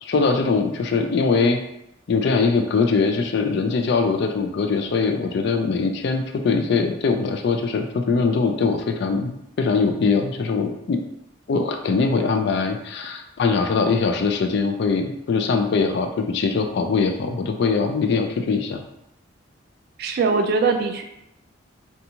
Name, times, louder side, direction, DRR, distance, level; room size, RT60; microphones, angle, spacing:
voice 1, 0.0-1.6 2.1-11.0 11.5-18.8, left 4 dB, 55° left, 5 dB, 0.3 m, -22 dB
voice 2, 20.0-21.0, right 4 dB, 50° right, 5 dB, 0.3 m, -21 dB
2.6 x 2.3 x 2.8 m, 0.83 s
head